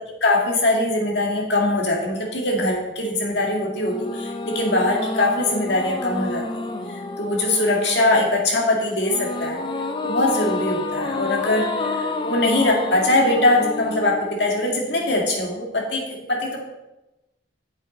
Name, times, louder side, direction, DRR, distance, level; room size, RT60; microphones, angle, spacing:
voice 1, 0.2-9.6 10.0-16.6, left 2 dB, 65° left, -1 dB, 2.0 m, -22 dB
sound 1, 3.8-15.2, left 2 dB, 25° left, 0.5 m, -30 dB
8.1 x 7.5 x 4.1 m, 0.98 s
head